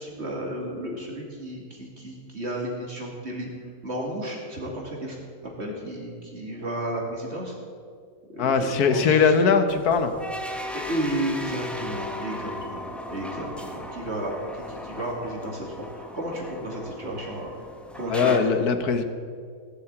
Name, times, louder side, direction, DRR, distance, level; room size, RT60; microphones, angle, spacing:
voice 1, 0.0-3.5 3.8-7.6 8.3-9.3 10.9-17.5 17.9-18.6, right 1 dB, 45° right, -1 dB, 2.7 m, -33 dB
voice 2, 8.4-10.1 18.1-19.0, left 5 dB, 75° left, 8 dB, 1.6 m, -20 dB
sound 1, 9.7-18.4, left 1 dB, ahead, 1.0 m, -37 dB
16.5 x 7.8 x 8.7 m, 2.1 s
omnidirectional pair, 1.7 m